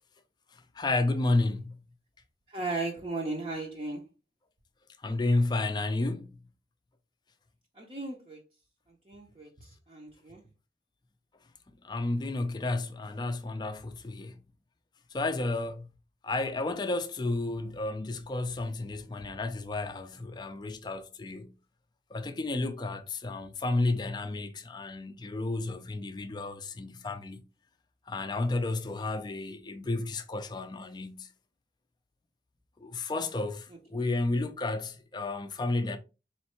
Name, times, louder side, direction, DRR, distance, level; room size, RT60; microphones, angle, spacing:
voice 1, 0.5-1.7 5.0-6.4 11.7-14.4 15.1-15.9 16.2-21.5 22.1-27.4 28.1-31.3 32.8-36.0, left 2 dB, 25° left, 0.4 m, -32 dB
voice 2, 2.5-4.1 7.8-8.4 9.1-10.4 33.9-34.0, right 3 dB, 30° right, 0.6 m, -36 dB
4.2 x 3.1 x 3.0 m
head